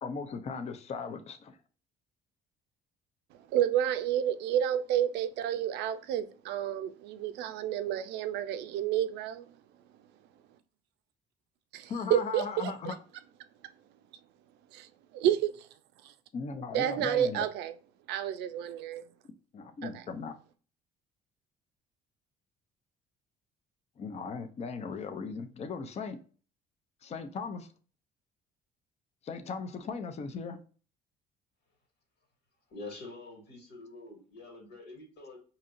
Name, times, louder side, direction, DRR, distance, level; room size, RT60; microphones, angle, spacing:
voice 1, 0.0-1.6 11.9-13.0 16.3-17.5 19.5-20.3 24.0-26.2 27.0-27.7 29.2-30.6, left 5 dB, 40° left, 0.6 m, -38 dB
voice 2, 3.5-9.5 11.7-12.9 14.7-14.9 15.1-15.7 16.0-16.1 16.7-17.7 18.1-19.0 19.8-20.0, right 10 dB, 85° right, 0.5 m, -30 dB
voice 3, 32.7-35.4, left 2 dB, 85° left, 1.8 m, -46 dB
4.9 x 2.8 x 2.5 m
cardioid pair, 110°, 17 cm